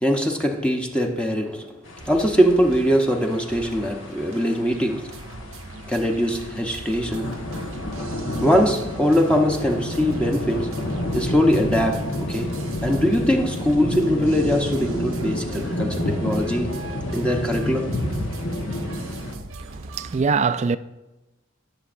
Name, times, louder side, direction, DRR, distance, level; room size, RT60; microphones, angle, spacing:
voice 1, 0.0-1.7 2.1-5.1 5.9-7.3 8.4-10.7 11.1-12.6 12.8-16.8 17.1-18.3, equal, 5° left, 0.7 m, -22 dB
sound 1, 1.9-19.3, left 1 dB, 70° left, 1.2 m, -30 dB
sound 2, 2.0-20.2, right 2 dB, 85° right, 0.8 m, -41 dB
voice 2, 19.6-20.8, right 5 dB, 35° right, 0.3 m, -23 dB
18.5 x 6.9 x 2.5 m
head